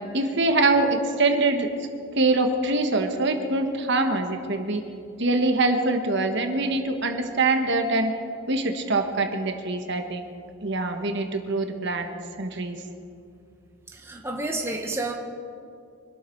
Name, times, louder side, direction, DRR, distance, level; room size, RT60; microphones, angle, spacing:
voice 1, 0.1-1.7 2.1-4.8 5.2-8.1 8.5-10.3 10.6-12.1 12.4-12.8, right 2 dB, 50° right, 5 dB, 1.4 m, -24 dB
voice 2, 13.9-15.1, right 2 dB, 10° right, 1 dB, 1.1 m, -30 dB
24.5 x 12.5 x 4.6 m, 2.4 s
head